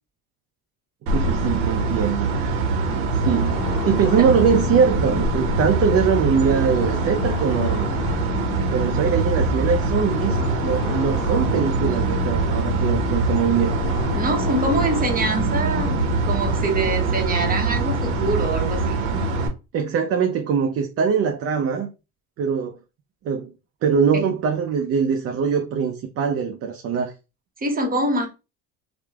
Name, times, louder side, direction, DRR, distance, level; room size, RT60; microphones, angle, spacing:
voice 1, 1.1-2.6 2.9-3.6 3.9-7.9 8.7-13.7 19.7-21.9 22.4-22.8 23.2-23.5 23.8-27.1, right 6 dB, 40° right, 0.4 m, -22 dB
sound 1, 1.1-19.5, right 3 dB, 80° right, 0.7 m, -23 dB
sound 2, 3.3-16.6, left 6 dB, 70° left, 0.5 m, -31 dB
voice 2, 14.1-16.0 16.2-19.0 24.1-24.3 27.6-28.3, right 2 dB, 20° right, 0.8 m, -24 dB
3.0 x 2.0 x 2.3 m
supercardioid pair, 75°, 40 cm